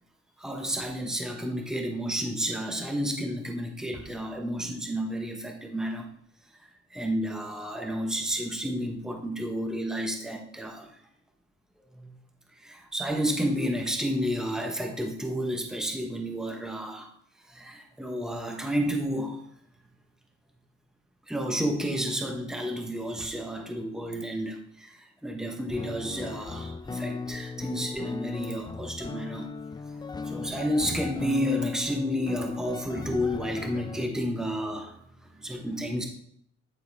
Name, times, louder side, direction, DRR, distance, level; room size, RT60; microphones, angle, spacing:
voice 1, 0.4-6.1 6.9-11.0 11.9-12.1 12.5-17.1 17.5-19.4 21.3-29.5 30.2-35.0 35.3-36.1, equal, ahead, 2 dB, 1.1 m, -31 dB
sound 1, 25.7-34.1, left 4 dB, 15° left, 0.4 m, -36 dB
9.7 x 4.1 x 3.5 m, 0.67 s
cardioid pair, 90°, 30 cm